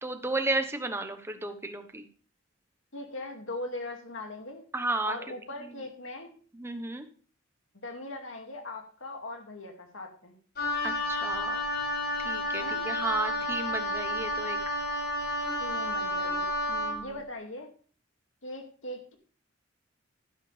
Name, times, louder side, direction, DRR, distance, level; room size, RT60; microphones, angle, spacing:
voice 1, 0.0-2.0 4.7-5.2 6.5-7.1 10.8-11.6 12.2-14.6 16.7-17.2, right 2 dB, 10° right, 7 dB, 1.1 m, -33 dB
voice 2, 2.9-4.7 5.0-6.3 7.7-10.4 12.6-12.8 15.6-16.5 17.0-17.7 18.4-19.1, left 2 dB, 65° left, 3 dB, 2.3 m, -40 dB
Wind instrument woodwind instrument, 10.6-17.0, left 1 dB, 50° left, 6.6 m, -31 dB
11.5 x 11.0 x 3.4 m, 0.41 s
head